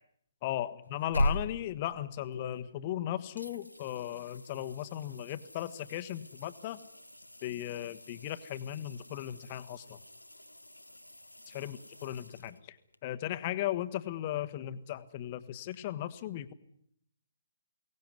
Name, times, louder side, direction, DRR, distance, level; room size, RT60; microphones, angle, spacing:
voice 1, 0.4-6.8 7.4-10.0 11.5-12.8 13.0-16.5, left 12 dB, 30° left, 11 dB, 1.3 m, -37 dB
sound 1, 0.8-3.0 3.4-13.0 15.7-15.8, left 1 dB, 90° left, 1.1 m, -40 dB
23.0 x 18.0 x 9.6 m, 0.71 s
figure-of-eight pair, 135°, 0 cm